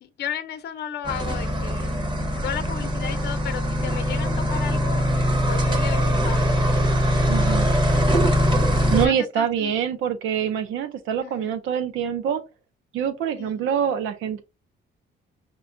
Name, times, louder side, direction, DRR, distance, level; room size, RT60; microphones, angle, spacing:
voice 1, 0.0-2.0 2.4-5.1 5.5-6.9 8.9-9.7 11.2-11.6 13.4-13.7, left 9 dB, 60° left, 0.6 m, -34 dB
sound 1, 1.0-9.1, equal, 25° right, 1.3 m, -22 dB
voice 2, 7.3-7.7 8.9-12.4 12.9-14.4, right 8 dB, 90° right, 0.7 m, -25 dB
6.7 x 2.3 x 2.6 m
cardioid pair, 90°, 20 cm